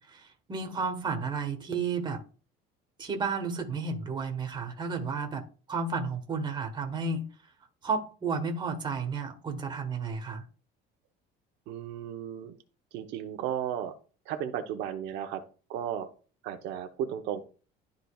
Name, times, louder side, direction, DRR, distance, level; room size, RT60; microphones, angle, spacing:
voice 1, 0.1-2.2 3.0-5.4 5.7-7.3 7.8-10.4, right 4 dB, 25° right, 1.3 m, -32 dB
voice 2, 11.7-12.5 12.9-13.9 14.3-15.4 15.7-16.1 16.4-17.4, right 9 dB, 75° right, 0.8 m, -34 dB
12.0 x 4.0 x 2.3 m
cardioid pair, 145°, 19 cm